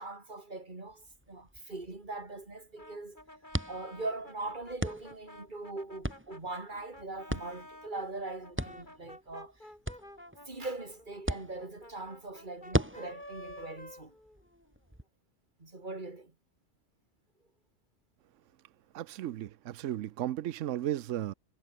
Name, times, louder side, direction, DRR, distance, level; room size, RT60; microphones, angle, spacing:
voice 1, 0.0-3.2 3.7-9.7 10.5-14.1 15.6-16.3, right 2 dB, 40° right, 3.1 m, -41 dB
sound 1, 0.9-15.0, equal, 10° right, 4.7 m, -40 dB
Brass instrument, 2.8-7.9 8.4-14.7, left 1 dB, 40° left, 8.3 m, -51 dB
voice 2, 18.9-21.3, right 12 dB, 80° right, 1.0 m, -35 dB
omnidirectional pair, 1.3 m